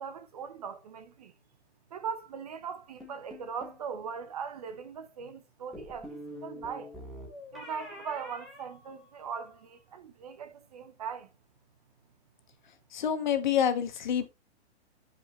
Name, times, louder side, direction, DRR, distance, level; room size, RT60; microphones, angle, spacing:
voice 1, 0.0-1.3 1.9-6.9 7.5-11.3, right 6 dB, 35° right, 0.8 m, -40 dB
sound 1, 3.0-3.8 5.7-9.5, left 1 dB, ahead, 0.6 m, -46 dB
voice 2, 12.9-14.3, left 8 dB, 40° left, 1.3 m, -27 dB
12.5 x 5.0 x 3.2 m
hypercardioid pair, 170°, 34 cm